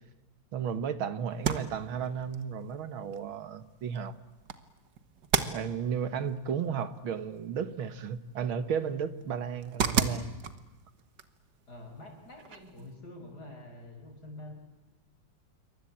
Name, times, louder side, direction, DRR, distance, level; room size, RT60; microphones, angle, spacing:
voice 1, 0.5-4.1 5.5-10.4, right 7 dB, 80° right, 12 dB, 2.1 m, -34 dB
sound 1, 1.3-12.9, right 6 dB, 60° right, 2.0 m, -37 dB
voice 2, 11.7-14.5, left 1 dB, 50° left, 3 dB, 6.2 m, -47 dB
27.5 x 24.0 x 8.7 m, 1.1 s
omnidirectional pair, 2.2 m